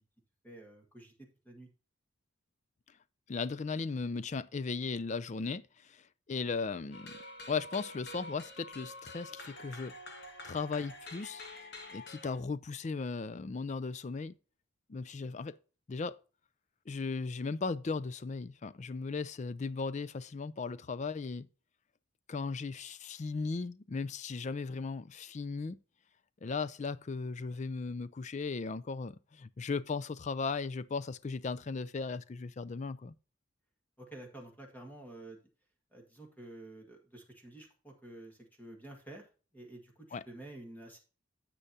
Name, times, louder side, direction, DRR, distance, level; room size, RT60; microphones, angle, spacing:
voice 1, 0.4-1.7 34.0-35.4 35.9-39.3 39.5-41.0, right 1 dB, 10° left, 1.8 m, -50 dB
voice 2, 3.3-7.2 7.5-9.9 10.4-11.4 11.9-14.3 14.9-15.5 15.9-16.2 16.9-21.5 22.3-25.8 26.4-33.1 40.1-40.2, left 4 dB, 35° left, 0.4 m, -37 dB
sound 1, 6.9-12.4, left 1 dB, 50° left, 1.7 m, -47 dB
10.0 x 7.7 x 2.7 m
head